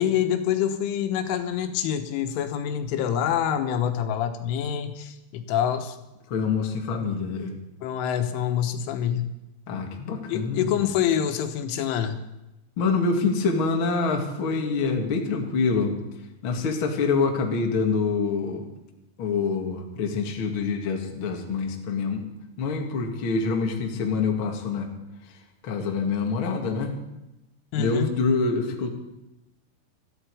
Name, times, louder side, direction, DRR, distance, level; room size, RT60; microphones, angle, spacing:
voice 1, 0.0-6.0 7.8-9.3 10.3-12.2 27.7-28.1, left 9 dB, 85° left, 7 dB, 3.7 m, -26 dB
voice 2, 6.3-7.5 9.7-10.9 12.8-16.0 16.4-18.6 19.2-22.2 22.6-24.9 25.6-27.0 27.8-28.9, left 4 dB, 45° left, 2 dB, 1.7 m, -26 dB
21.0 x 14.0 x 4.8 m, 0.93 s
omnidirectional pair, 5.5 m